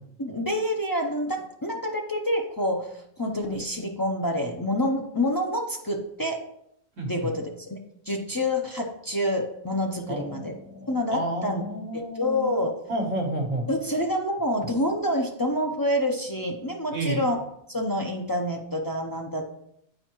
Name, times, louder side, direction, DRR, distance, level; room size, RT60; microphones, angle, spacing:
voice 1, 0.2-2.9 3.2-6.4 7.1-7.8 8.1-10.5 10.9-11.6 11.9-12.7 13.7-17.4 17.7-19.4, left 1 dB, 35° left, 1 dB, 0.3 m, -27 dB
voice 2, 10.1-12.6 12.9-13.7 16.9-17.2, right 1 dB, 70° right, 1 dB, 1.6 m, -30 dB
8.9 x 4.5 x 3.0 m, 0.75 s
omnidirectional pair, 1.4 m